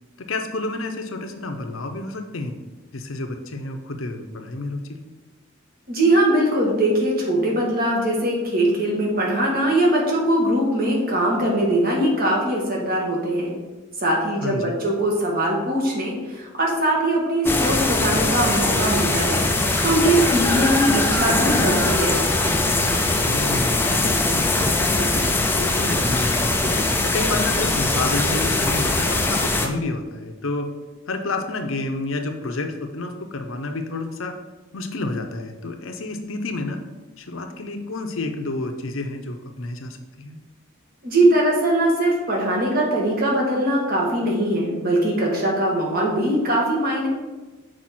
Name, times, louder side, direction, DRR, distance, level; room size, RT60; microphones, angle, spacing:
voice 1, 0.2-2.5 2.9-5.0 14.4-14.8 23.1-26.6 27.0-30.7 31.1-34.3 34.7-36.8 37.2-40.4, left 2 dB, 75° left, 6 dB, 0.7 m, -30 dB
voice 2, 5.9-13.5 14.0-22.2 41.0-47.1, right 1 dB, 45° right, -2 dB, 1.6 m, -21 dB
sound 1, 17.5-29.7, left 2 dB, 10° left, 0.4 m, -21 dB
6.2 x 4.6 x 4.3 m, 1.2 s
head